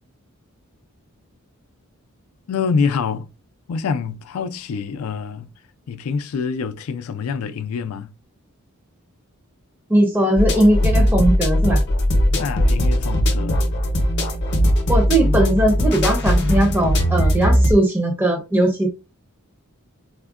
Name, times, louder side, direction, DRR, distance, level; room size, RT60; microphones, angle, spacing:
voice 1, 2.5-3.3 3.7-5.5 5.9-8.1 12.4-13.6, left 5 dB, 75° left, 0.3 m, -26 dB
voice 2, 9.9-11.8 14.9-18.9, right 1 dB, 10° right, 0.5 m, -19 dB
sound 1, 10.4-17.7, equal, 50° left, 0.7 m, -19 dB
3.5 x 2.1 x 2.3 m
head